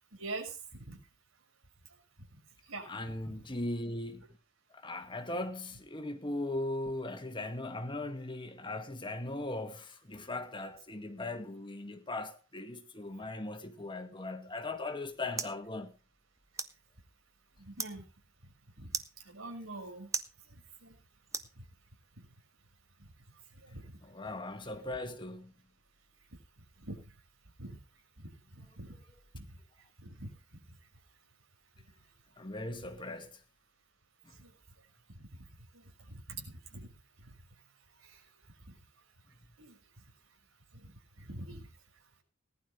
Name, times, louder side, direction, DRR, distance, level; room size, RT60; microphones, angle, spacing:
voice 1, 0.2-1.0 2.7-2.9 17.6-18.0 18.8-18.9 19.2-20.1 20.8-21.0 23.0-23.1 23.6-24.0 26.8-27.0 27.7-27.8 28.2-28.3 28.6-29.0 29.3-29.4 30.0-30.3 34.4-34.5 35.4-35.5 35.7-36.9 37.3-37.4 38.0-38.2 39.6-39.8 40.7-41.7, right 2 dB, 90° right, 6.2 m, -44 dB
voice 2, 2.8-4.2 4.7-16.0 24.0-25.5 32.4-33.4 34.3-34.4, left 2 dB, 25° left, 2.0 m, -39 dB
sound 1, 14.6-22.1, right 4 dB, 15° right, 1.1 m, -44 dB
19.5 x 11.5 x 3.3 m
head